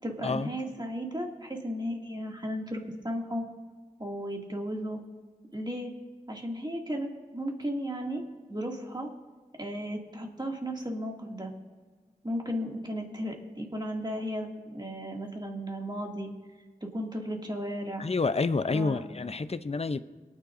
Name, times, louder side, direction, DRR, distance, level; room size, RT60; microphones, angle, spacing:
voice 1, 0.0-3.4 4.0-5.0 5.5-5.9 6.3-8.2 8.5-9.1 9.6-11.5 12.2-14.5 14.7-16.3 16.9-18.1 18.7-19.0, equal, 30° right, 0 dB, 2.3 m, -34 dB
voice 2, 18.0-20.0, left 4 dB, 45° left, 12 dB, 0.6 m, -28 dB
23.0 x 9.7 x 2.6 m, 1.4 s
wide cardioid pair, 40°, 15 cm